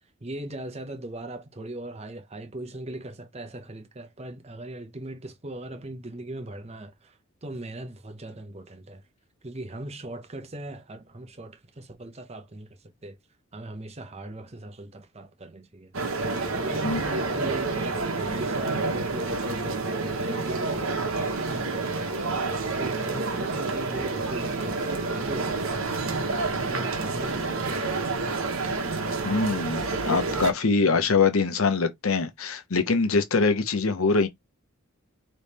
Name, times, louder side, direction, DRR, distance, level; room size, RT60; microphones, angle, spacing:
voice 1, 0.2-9.0 9.4-12.7 13.0-13.2 13.5-15.9 16.6-24.8 25.1-28.0 30.8-31.1, right 1 dB, 30° right, 0.8 m, -39 dB
sound 1, 15.9-30.5, right 3 dB, 80° right, 1.2 m, -29 dB
voice 2, 29.2-34.3, left 4 dB, 90° left, 0.8 m, -23 dB
3.5 x 3.2 x 4.1 m
head